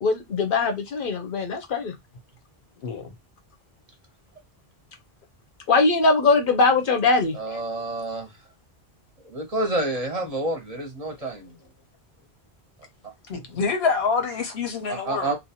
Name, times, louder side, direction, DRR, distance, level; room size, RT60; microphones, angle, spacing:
voice 1, 0.0-1.9 5.7-7.4, left 3 dB, 60° left, 0.8 m, -21 dB
voice 2, 2.8-3.1 13.3-15.4, left 5 dB, 80° left, 1.0 m, -26 dB
voice 3, 7.3-8.3 9.2-11.6 14.9-15.4, right 2 dB, 45° right, 0.7 m, -28 dB
2.6 x 2.2 x 2.7 m
omnidirectional pair, 1.0 m